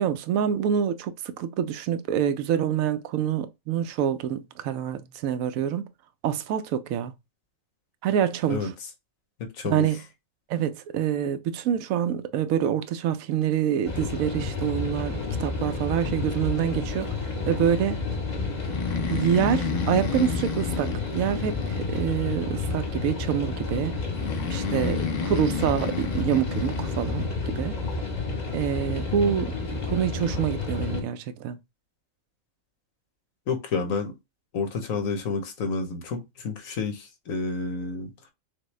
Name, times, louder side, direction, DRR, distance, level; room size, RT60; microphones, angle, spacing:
voice 1, 0.0-5.9 6.2-7.1 8.0-8.7 9.6-10.0 10.5-17.2 17.5-18.0 19.1-24.0 24.5-27.8 28.5-31.6, right 9 dB, 85° right, 1.0 m, -26 dB
voice 2, 9.4-9.9 33.5-34.1 34.5-38.1, left 4 dB, 80° left, 1.4 m, -30 dB
sound 1, 13.8-31.0, left 3 dB, 35° left, 1.1 m, -30 dB
Breathing, 18.6-22.3 24.1-27.2, left 5 dB, 55° left, 0.8 m, -32 dB
6.1 x 2.2 x 3.2 m
omnidirectional pair, 1.4 m